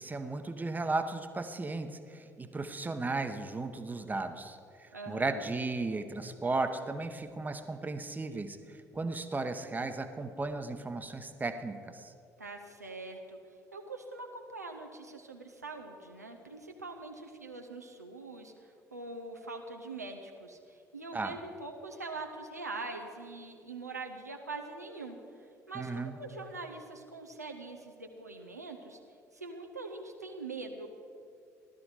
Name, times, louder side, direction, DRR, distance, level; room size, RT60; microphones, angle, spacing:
voice 1, 0.0-12.1 21.1-21.4 25.7-26.2, right 3 dB, 20° right, 8 dB, 1.0 m, -35 dB
voice 2, 4.9-5.4 12.4-13.4 13.7-29.0 29.3-30.9, right 3 dB, 90° right, 2 dB, 0.8 m, -43 dB
15.5 x 12.5 x 4.9 m, 2.4 s
figure-of-eight pair, 50°, 9 cm